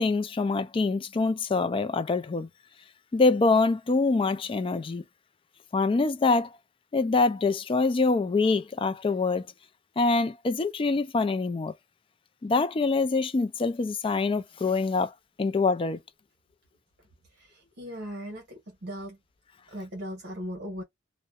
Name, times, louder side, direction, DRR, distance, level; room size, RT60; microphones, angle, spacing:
voice 1, 0.0-2.5 3.1-5.0 5.7-6.5 6.9-9.5 10.0-11.7 12.4-15.1 15.4-16.0, left 3 dB, 30° left, 0.3 m, -25 dB
voice 2, 17.3-19.2 19.7-20.8, equal, 60° right, 1.0 m, -38 dB
2.6 x 2.1 x 2.3 m
head